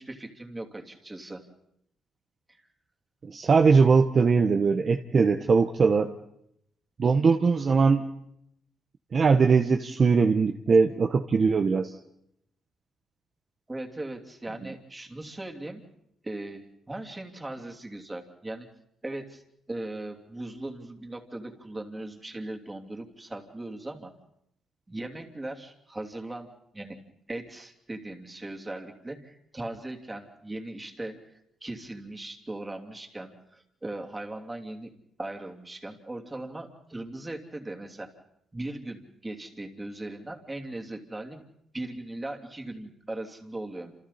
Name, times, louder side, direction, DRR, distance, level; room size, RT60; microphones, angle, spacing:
voice 1, 0.0-1.5 2.5-2.6 13.7-15.8 16.2-18.7 19.0-19.4 19.7-24.1 24.9-27.0 27.3-31.2 31.6-34.9 35.2-38.1 38.5-41.4 41.7-43.9, right 2 dB, 15° right, 3 dB, 3.0 m, -38 dB
voice 2, 3.3-6.1 7.0-8.0 9.1-11.9, right 5 dB, 45° right, 5 dB, 1.1 m, -21 dB
28.5 x 27.5 x 4.3 m, 0.76 s
cardioid pair, 90°, 0 cm